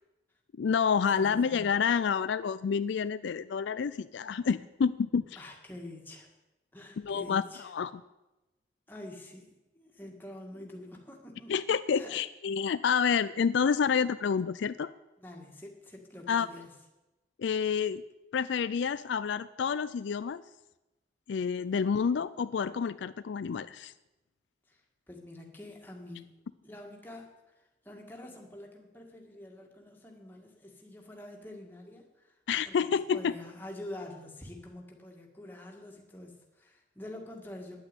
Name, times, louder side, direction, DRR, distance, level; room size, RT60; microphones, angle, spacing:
voice 1, 0.6-5.4 7.0-7.9 11.5-14.9 16.3-16.5 17.4-18.0 18.3-20.4 21.3-23.9 32.5-33.3, left 6 dB, 70° left, 14 dB, 0.4 m, -29 dB
voice 2, 5.4-6.3 6.7-7.7 8.9-11.5 11.9-12.2 15.2-16.7 24.7-26.3 26.6-32.4 32.7-37.8, left 1 dB, 10° left, 0 dB, 1.9 m, -46 dB
10.0 x 8.8 x 9.0 m, 1.0 s
head